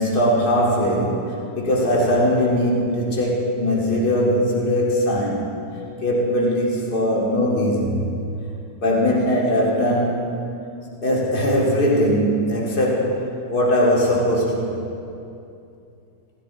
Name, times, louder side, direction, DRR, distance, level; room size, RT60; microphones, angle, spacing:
voice 1, 0.0-5.5 6.0-8.1 8.8-10.2 11.0-14.8, equal, 40° left, -3 dB, 2.7 m, -20 dB
17.5 x 9.4 x 4.3 m, 2.7 s
figure-of-eight pair, 90°, 0 cm